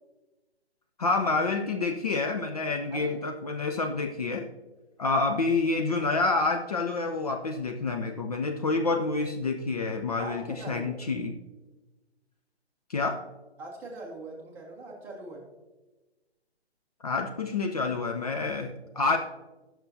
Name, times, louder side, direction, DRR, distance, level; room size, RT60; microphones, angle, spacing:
voice 1, 1.0-4.5 5.0-11.4 12.9-13.2 17.0-19.2, left 3 dB, 35° left, 5 dB, 0.5 m, -28 dB
voice 2, 10.2-11.0 13.6-15.4, right 2 dB, 5° right, -2 dB, 0.8 m, -41 dB
16.0 x 6.1 x 2.7 m, 1.1 s
figure-of-eight pair, 135°, 32 cm